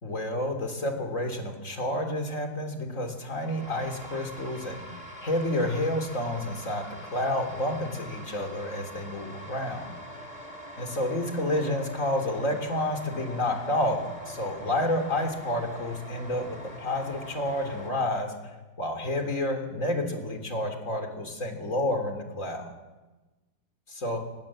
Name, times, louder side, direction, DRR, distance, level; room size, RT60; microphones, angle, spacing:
voice 1, 0.0-6.9 7.1-9.9 10.8-18.3 18.8-22.7 23.9-24.2, left 1 dB, 45° left, 5 dB, 3.7 m, -30 dB
sound 1, 3.2-17.9, equal, 20° left, 3.7 m, -44 dB
23.5 x 20.5 x 7.5 m, 1.2 s
omnidirectional pair, 2.0 m